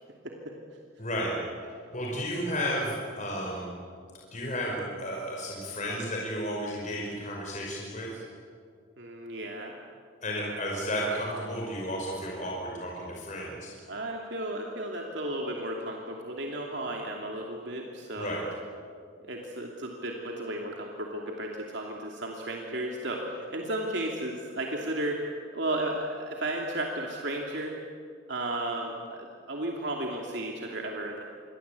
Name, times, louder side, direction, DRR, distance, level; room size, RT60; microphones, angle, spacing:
voice 1, 1.0-1.3 1.6-3.7 4.3-8.2 10.2-13.7 18.2-18.4, equal, 40° left, -2 dB, 5.3 m, -33 dB
voice 2, 9.0-9.8 13.9-18.4 19.3-27.8 28.3-31.2, right 1 dB, 60° right, 0 dB, 2.8 m, -34 dB
27.5 x 23.5 x 8.4 m, 2.2 s
head